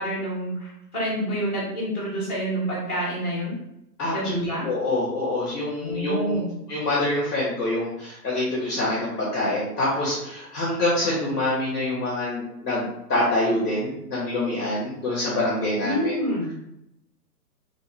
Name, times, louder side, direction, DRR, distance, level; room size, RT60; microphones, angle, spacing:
voice 1, 0.0-3.5 4.1-4.6 5.8-6.5 15.8-16.5, right 1 dB, 10° right, -6 dB, 0.9 m, -28 dB
voice 2, 4.0-6.4 6.7-16.1, left 1 dB, 10° left, -7 dB, 0.6 m, -26 dB
3.1 x 2.8 x 4.2 m, 0.82 s
hypercardioid pair, 170°, 50 cm